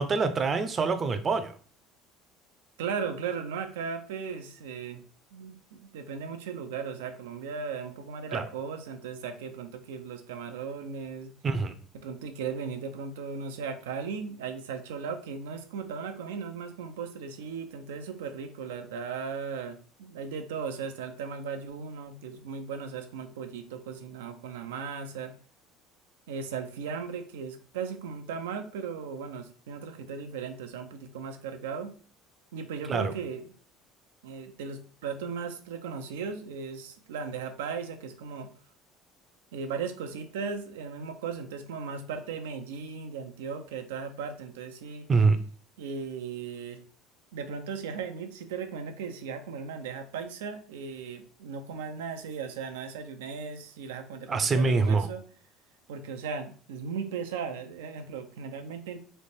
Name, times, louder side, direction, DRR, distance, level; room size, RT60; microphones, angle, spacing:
voice 1, 0.0-1.5 8.3-8.4 11.4-11.7 32.9-33.1 45.1-45.4 54.3-55.1, right 4 dB, 35° right, 9 dB, 0.7 m, -25 dB
voice 2, 2.8-5.0 5.3-11.3 11.9-25.3 26.3-31.9 32.5-33.4 34.2-38.5 39.5-45.1 45.8-46.8 47.3-55.2 55.9-59.0, right 6 dB, 90° right, 7 dB, 0.6 m, -37 dB
3.3 x 2.9 x 4.3 m, 0.41 s
supercardioid pair, 85°, 0 cm